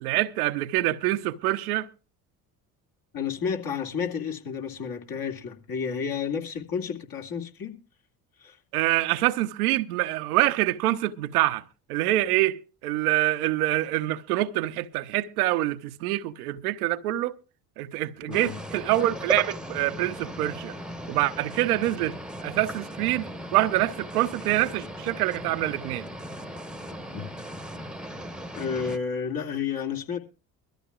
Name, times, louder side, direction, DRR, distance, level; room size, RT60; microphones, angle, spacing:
voice 1, 0.0-1.9 8.7-11.6 11.9-17.3 17.8-20.7 21.1-26.1, right 16 dB, 75° right, 0.9 m, -26 dB
voice 2, 3.1-7.8 8.4-8.6 18.2-18.6 27.1-27.3 28.5-30.2, left 6 dB, 50° left, 2.5 m, -31 dB
sound 1, 18.3-29.0, right 1 dB, ahead, 1.1 m, -37 dB
23.0 x 13.5 x 2.4 m
hypercardioid pair, 55°, 45 cm